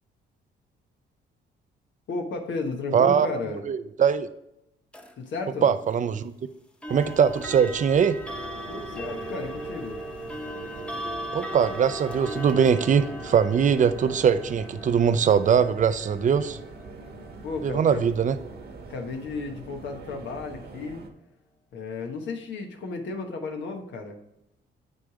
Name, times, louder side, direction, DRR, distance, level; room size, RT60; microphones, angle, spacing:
voice 1, 2.1-3.6 5.2-5.7 8.7-10.0 17.4-18.0 18.9-21.0 21.7-24.2, left 3 dB, 65° left, 3 dB, 1.2 m, -33 dB
voice 2, 2.9-3.3 3.6-4.3 5.6-6.3 6.9-8.2 11.3-16.6 17.6-18.4, right 7 dB, 40° right, 13 dB, 0.5 m, -21 dB
sound 1, 4.9-5.1 6.8-19.6, equal, 5° left, 0.9 m, -39 dB
sound 2, 6.9-21.1, right 3 dB, 55° right, 1.3 m, -43 dB
9.1 x 3.3 x 4.9 m, 0.83 s
cardioid pair, 90°, 20 cm